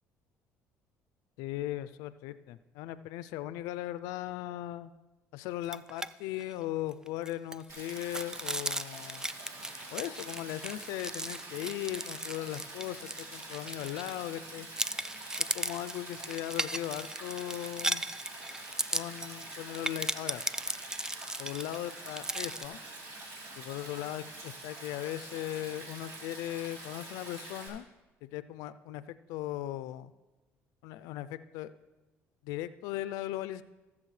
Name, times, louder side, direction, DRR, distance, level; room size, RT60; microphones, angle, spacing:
voice 1, 1.4-4.9 5.3-9.3 9.9-14.7 15.5-18.0 18.9-20.4 21.4-22.8 23.5-27.9 28.2-30.1 30.8-31.7 32.4-33.6, left 14 dB, 85° left, 15 dB, 0.4 m, -38 dB
sound 1, 5.6-6.1 6.4-6.5 6.9-14.4 14.8-22.7, right 1 dB, 10° right, 0.4 m, -37 dB
Stream, 7.7-27.7, right 2 dB, 70° right, 3.5 m, -46 dB
17.5 x 7.3 x 3.2 m, 1.1 s
supercardioid pair, 80°, 6 cm